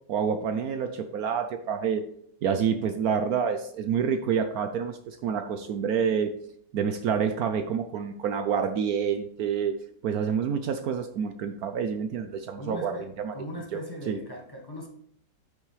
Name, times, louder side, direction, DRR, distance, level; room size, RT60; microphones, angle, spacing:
voice 1, 0.1-2.0 2.4-6.3 6.7-13.3 13.7-13.8 14.1-14.2, right 7 dB, 70° right, 8 dB, 1.1 m, -28 dB
voice 2, 12.6-14.9, equal, 15° left, -2 dB, 1.5 m, -39 dB
10.0 x 6.4 x 3.3 m, 0.66 s
omnidirectional pair, 1.8 m